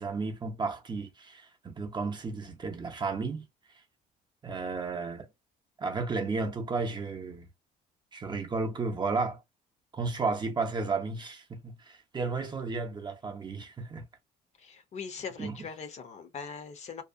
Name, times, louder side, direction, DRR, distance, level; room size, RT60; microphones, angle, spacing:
voice 1, 0.0-3.5 4.4-5.3 5.8-7.5 8.1-9.4 9.9-14.1 15.4-15.6, right 4 dB, 25° right, 0.6 m, -33 dB
voice 2, 14.6-17.0, left 5 dB, 40° left, 0.6 m, -41 dB
2.7 x 2.0 x 2.4 m
cardioid pair, 110°, 17 cm